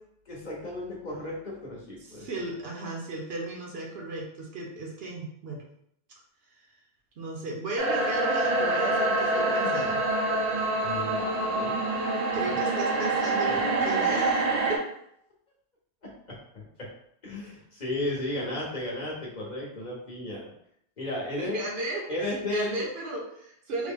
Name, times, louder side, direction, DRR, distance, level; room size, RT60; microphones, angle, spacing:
voice 1, 0.3-2.3 10.8-11.8 13.5-13.6 16.0-16.9 17.2-20.5 21.0-21.6 22.1-22.9, left 1 dB, 45° left, -3 dB, 0.9 m, -34 dB
voice 2, 2.0-5.6 7.2-10.0 12.3-14.4 14.7-14.8 21.4-23.9, right 2 dB, 65° right, 0 dB, 0.9 m, -35 dB
sound 1, 7.8-14.8, right 2 dB, 45° right, 0.6 m, -26 dB
3.5 x 2.1 x 3.5 m, 0.73 s
omnidirectional pair, 1.2 m